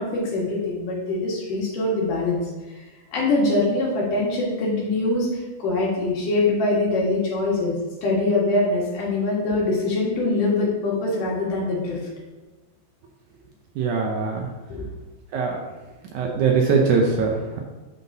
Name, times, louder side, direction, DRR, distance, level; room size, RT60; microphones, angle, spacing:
voice 1, 0.0-2.4 3.1-7.7 8.0-12.0 14.7-14.9, left 2 dB, 70° left, -4 dB, 3.2 m, -23 dB
voice 2, 13.8-14.5 15.3-15.6 16.1-17.6, right 5 dB, 75° right, 0 dB, 2.0 m, -21 dB
9.1 x 5.8 x 2.8 m, 1.2 s
omnidirectional pair, 4.0 m